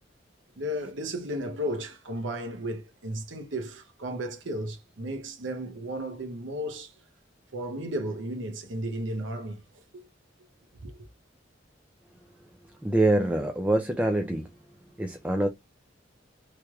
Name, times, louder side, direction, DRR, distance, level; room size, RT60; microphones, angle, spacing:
voice 1, 0.6-6.9 7.5-9.6 9.9-10.1 10.7-10.9, equal, 75° right, 0.8 m, -34 dB
voice 2, 12.8-14.5 15.0-15.5, right 1 dB, 10° right, 0.4 m, -25 dB
3.2 x 3.0 x 2.3 m
head